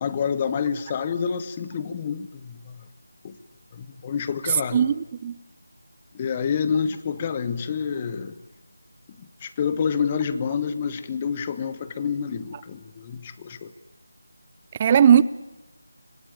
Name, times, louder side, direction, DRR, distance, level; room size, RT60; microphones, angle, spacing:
voice 1, 0.0-2.8 3.2-3.4 3.7-4.8 6.1-8.3 9.2-13.7, left 6 dB, 20° left, 1.1 m, -28 dB
voice 2, 4.7-5.3 14.8-15.2, right 8 dB, 20° right, 0.7 m, -17 dB
25.5 x 18.0 x 8.8 m
figure-of-eight pair, 170°, 0 cm